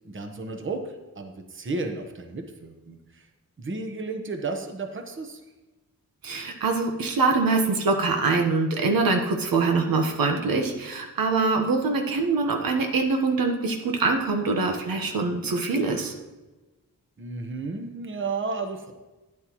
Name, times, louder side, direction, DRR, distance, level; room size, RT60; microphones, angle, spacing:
voice 1, 0.0-3.2 3.6-5.4 17.2-18.9, right 3 dB, 35° right, 4 dB, 1.1 m, -33 dB
voice 2, 6.2-16.1, right 3 dB, 90° right, 3 dB, 1.3 m, -24 dB
12.0 x 9.9 x 3.1 m, 1.1 s
wide cardioid pair, 125°, 34 cm